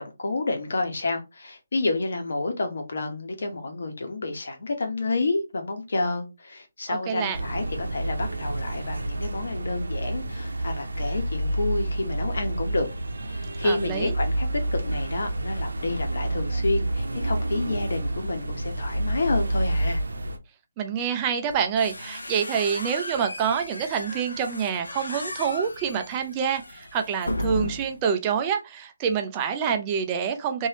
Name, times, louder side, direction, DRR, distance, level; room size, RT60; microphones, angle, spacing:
voice 1, 0.0-12.9 13.3-20.0, left 2 dB, 65° left, 1.1 m, -29 dB
voice 2, 6.9-7.4 13.6-14.1 20.8-30.7, right 7 dB, 25° right, 0.5 m, -27 dB
sound 1, 7.3-20.4, right 1 dB, 80° right, 0.7 m, -29 dB
sound 2, 21.5-28.1, left 1 dB, 90° left, 0.7 m, -35 dB
3.1 x 2.7 x 3.0 m
figure-of-eight pair, 150°, 0 cm